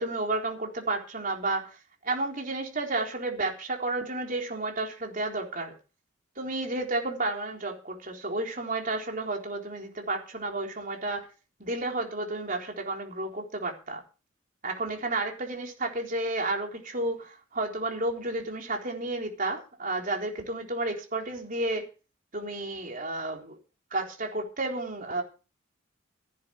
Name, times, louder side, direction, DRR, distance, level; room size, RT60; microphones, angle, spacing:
voice 1, 0.0-1.8 2.0-5.7 6.4-11.3 11.6-14.0 14.6-21.8 22.3-23.6 23.9-25.2, right 2 dB, 40° right, 2 dB, 4.0 m, -31 dB
15.5 x 10.5 x 4.8 m, 0.33 s
head